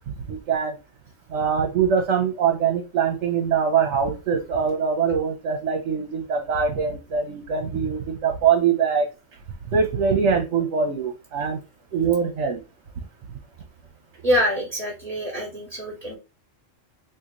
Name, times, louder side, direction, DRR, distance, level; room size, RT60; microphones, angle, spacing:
voice 1, 0.1-0.8 1.3-9.1 9.7-11.6 11.9-12.6, right 6 dB, 65° right, 2 dB, 1.0 m, -23 dB
voice 2, 14.2-16.2, equal, 45° right, -4 dB, 1.4 m, -25 dB
3.8 x 2.7 x 2.8 m, 0.28 s
omnidirectional pair, 1.4 m